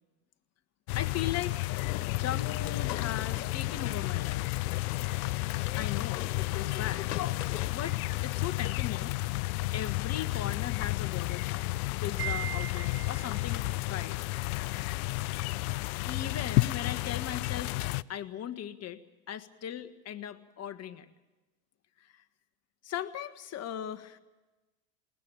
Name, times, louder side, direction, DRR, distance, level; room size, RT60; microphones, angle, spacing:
sound 1, 0.9-18.0, left 21 dB, 65° left, 0.7 m, -32 dB
voice 1, 0.9-1.5 2.1-4.5 5.2-6.3 6.5-7.1 7.7-9.2 9.7-11.7 12.0-14.2 16.0-17.8 18.1-19.0 19.3-21.1 22.0-22.2 22.8-24.2, left 10 dB, 30° left, 9 dB, 1.6 m, -38 dB
sound 2, 1.7-7.7, left 11 dB, 80° left, 1.6 m, -41 dB
Wind chime, 12.2-13.6, right 12 dB, 80° right, 1.1 m, -39 dB
20.5 x 19.5 x 8.9 m, 1.1 s
hypercardioid pair, 110°, 47 cm